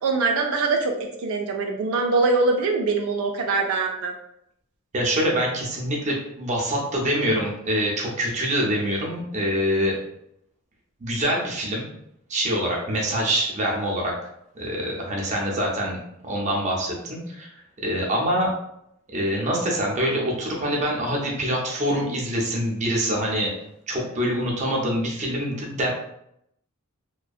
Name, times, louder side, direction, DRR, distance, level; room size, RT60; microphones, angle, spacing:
voice 1, 0.0-4.1, right 3 dB, 85° right, 3 dB, 0.4 m, -23 dB
voice 2, 4.9-9.9 11.0-11.8 12.3-14.1 14.5-16.0 16.2-17.5 17.8-18.5 19.1-23.5 23.9-25.9, equal, 35° right, -2 dB, 0.5 m, -25 dB
2.6 x 2.1 x 2.3 m, 0.76 s
head